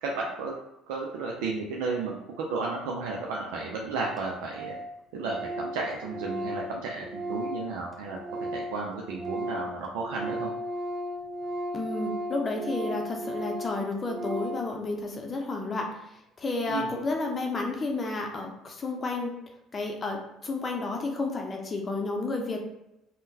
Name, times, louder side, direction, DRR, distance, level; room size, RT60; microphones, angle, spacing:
voice 1, 0.0-0.5 0.9-4.8 5.1-8.2 8.5-10.5 16.7-16.9, right 3 dB, 85° right, -2 dB, 0.4 m, -33 dB
Organ, 3.6-3.7 3.9-4.0 4.2-4.3 4.5-4.9 5.2-8.8 9.1-14.7, equal, 10° right, 0.7 m, -35 dB
voice 2, 11.7-19.4 19.7-22.6, left 3 dB, 35° left, 2 dB, 0.6 m, -31 dB
3.6 x 2.2 x 2.7 m, 0.88 s
supercardioid pair, 75°, 0 cm